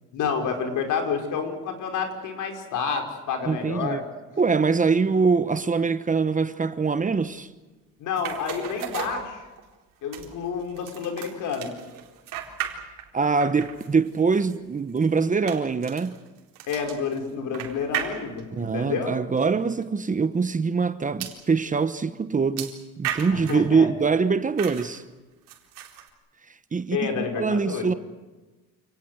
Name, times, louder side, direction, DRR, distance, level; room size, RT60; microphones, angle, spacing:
voice 1, 0.1-4.0 8.0-9.5 10.0-11.8 16.7-19.1 23.3-23.9 26.9-27.9, left 6 dB, 70° left, 5.0 m, -29 dB
voice 2, 3.4-4.0 4.4-7.5 13.1-16.2 18.5-25.0 26.7-27.9, right 5 dB, 25° right, 1.1 m, -23 dB
sound 1, 8.2-9.8 10.1-13.1 13.4-18.6 19.4-19.5 19.8-19.9 21.2-21.4 22.6-23.7 24.6-25.0 25.5-26.1, right 10 dB, 85° right, 4.0 m, -36 dB
28.5 x 18.5 x 8.0 m
cardioid pair, 110°, 32 cm